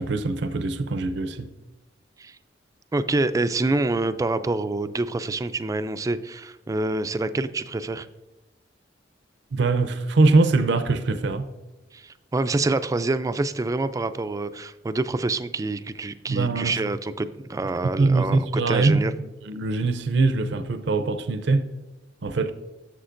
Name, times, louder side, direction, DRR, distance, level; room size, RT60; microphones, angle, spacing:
voice 1, 0.0-1.5 9.5-11.5 16.3-16.8 17.8-19.0 19.4-21.7 22.2-22.5, right 3 dB, 70° right, 0.6 m, -22 dB
voice 2, 2.9-8.1 11.9-19.1, right 2 dB, 20° right, 0.3 m, -26 dB
11.0 x 7.2 x 2.5 m
head